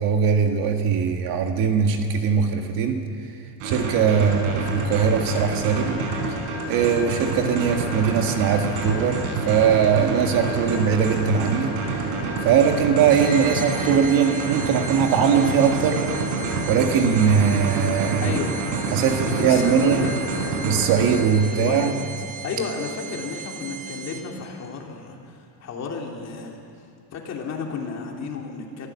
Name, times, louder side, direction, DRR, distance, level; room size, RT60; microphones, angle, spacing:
voice 1, 0.0-3.0 3.6-6.0 6.7-11.7 12.4-16.1 16.7-18.4 18.9-20.0 20.6-22.0, right 7 dB, 45° right, 5 dB, 1.8 m, -20 dB
sound 1, 3.6-21.2, right 3 dB, 65° right, 4.9 m, -28 dB
voice 2, 4.1-4.4 18.2-18.5 19.0-20.5 21.5-22.0 22.4-26.6 27.1-28.9, left 5 dB, 35° left, 0 dB, 3.0 m, -32 dB
sound 2, 13.1-24.5, right 6 dB, 15° right, 1.8 m, -37 dB
24.0 x 15.0 x 7.3 m, 2.5 s
supercardioid pair, 145°, 46 cm